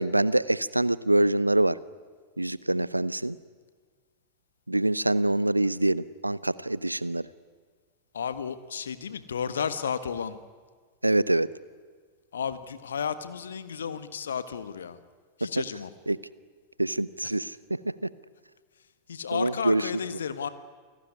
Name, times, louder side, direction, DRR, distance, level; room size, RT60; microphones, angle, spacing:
voice 1, 0.0-1.8 2.4-3.4 4.7-7.2 11.0-11.5 15.4-15.5 16.1-16.2 16.8-18.1 19.3-19.9, right 1 dB, 85° right, 19 dB, 0.7 m, -25 dB
voice 2, 8.1-10.4 12.3-15.0 15.4-15.9 19.1-20.5, left 7 dB, 65° left, 12 dB, 1.5 m, -33 dB
28.0 x 18.0 x 9.8 m, 1.5 s
figure-of-eight pair, 90°, 0 cm